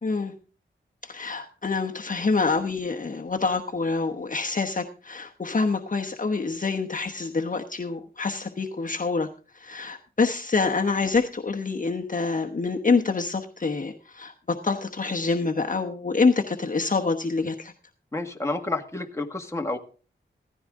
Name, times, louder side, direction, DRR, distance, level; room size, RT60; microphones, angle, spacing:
voice 1, 0.0-0.3 1.0-9.3 9.5-17.7, left 4 dB, 40° left, 3 dB, 1.1 m, -26 dB
voice 2, 18.1-19.8, left 2 dB, 15° left, 3 dB, 1.9 m, -30 dB
16.0 x 14.5 x 3.7 m, 0.39 s
wide cardioid pair, 100°, 20 cm